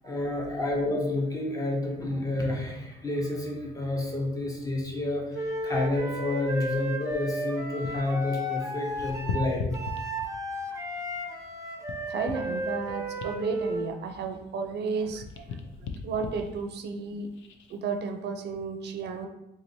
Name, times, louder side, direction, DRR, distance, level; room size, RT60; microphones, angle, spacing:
voice 1, 0.0-5.3 5.6-9.8, left 2 dB, 15° left, -1 dB, 0.9 m, -29 dB
Wind instrument woodwind instrument, 5.3-13.9, equal, 15° right, 0.7 m, -34 dB
sound 1, 5.4-8.2 8.4-10.6 11.1-14.7 15.0-17.8 18.3-18.5, left 5 dB, 70° left, 0.5 m, -40 dB
voice 2, 12.1-15.3 16.0-17.3 17.7-19.3, right 5 dB, 60° right, 6 dB, 0.5 m, -33 dB
3.7 x 3.0 x 2.7 m, 0.90 s
cardioid pair, 90°, 20 cm